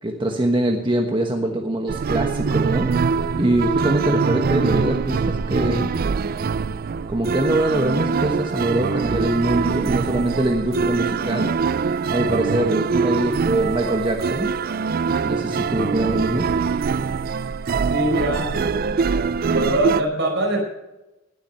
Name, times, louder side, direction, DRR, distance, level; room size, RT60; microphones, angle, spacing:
voice 1, 0.0-5.9 7.1-11.5 12.1-14.5 15.2-16.5, right 1 dB, 25° right, 2 dB, 1.2 m, -23 dB
sound 1, 1.9-20.0, right 5 dB, 50° right, 0.4 m, -23 dB
voice 2, 17.8-18.6 19.5-20.6, right 1 dB, 65° right, 1 dB, 5.1 m, -23 dB
19.5 x 7.5 x 5.5 m, 1.0 s
head